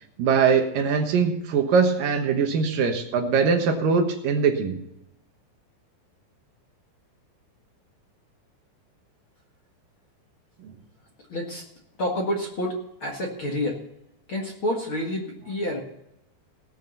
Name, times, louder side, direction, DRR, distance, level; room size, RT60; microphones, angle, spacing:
voice 1, 0.2-4.8 10.6-10.7, right 5 dB, 65° right, 5 dB, 2.7 m, -22 dB
voice 2, 11.3-11.6 12.0-13.8 14.3-15.8, left 1 dB, 45° left, -1 dB, 1.9 m, -28 dB
18.0 x 6.7 x 6.6 m, 0.81 s
omnidirectional pair, 4.8 m